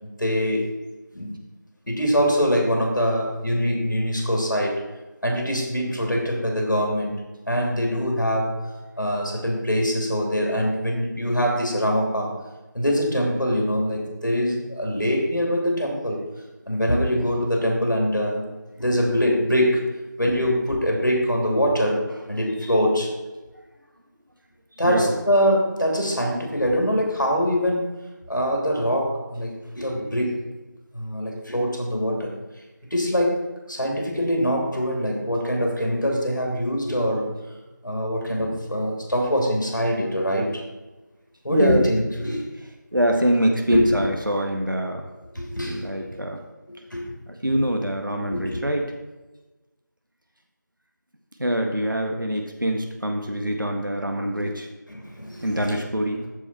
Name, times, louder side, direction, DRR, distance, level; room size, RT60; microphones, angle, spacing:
voice 1, 0.0-0.7 1.1-1.4 1.9-4.8 5.2-7.2 7.5-8.5 9.0-12.3 12.7-16.2 16.7-18.5 18.8-23.1 24.8-27.9 28.3-30.5 30.9-32.3 32.8-37.3 37.8-40.6 41.4-42.4 43.7-44.1 45.3-46.2 46.9-47.0 48.3-48.6 54.4-54.5 54.9-55.8, equal, 75° left, 0 dB, 3.0 m, -23 dB
voice 2, 24.8-25.2 41.5-41.8 42.9-45.0 45.6-46.4 47.3-48.9 51.4-54.7 55.4-56.2, equal, 85° right, 3 dB, 1.6 m, -24 dB
13.5 x 5.1 x 4.4 m, 1.1 s
figure-of-eight pair, 180°, 11 cm